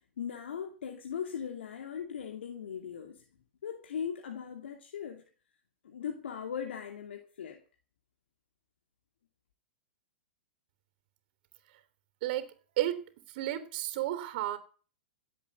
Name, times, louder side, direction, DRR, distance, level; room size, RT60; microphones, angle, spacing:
voice 1, 0.2-3.2 3.6-5.2 5.8-7.6, left 8 dB, 75° left, 2.5 m, -39 dB
voice 2, 13.3-14.6, right 13 dB, 55° right, 3.3 m, -32 dB
16.5 x 8.2 x 8.4 m
hypercardioid pair, 120°, 6 cm